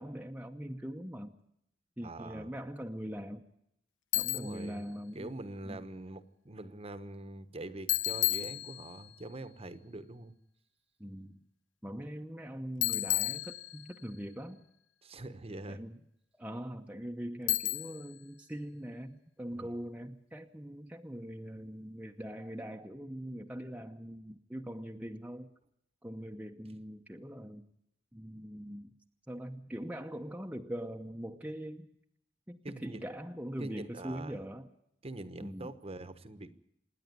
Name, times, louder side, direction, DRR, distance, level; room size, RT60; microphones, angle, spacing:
voice 1, 0.0-1.4 2.0-3.4 4.1-5.3 5.6-5.8 11.0-11.4 11.8-14.7 15.7-16.0 16.4-25.5 26.0-27.6 28.1-28.9 29.3-31.9 32.5-34.7 35.4-35.7, equal, 10° right, 3 dB, 0.9 m, -42 dB
voice 2, 2.0-2.5 4.3-10.3 15.0-15.8 19.5-19.7 32.6-33.0 33.6-34.4 35.0-36.6, right 2 dB, 35° right, 12 dB, 1.1 m, -44 dB
Bicycle, 4.1-4.7 7.9-9.1 12.8-14.1 17.5-18.1, left 16 dB, 90° left, 0.9 m, -32 dB
27.0 x 10.0 x 9.6 m, 0.77 s
head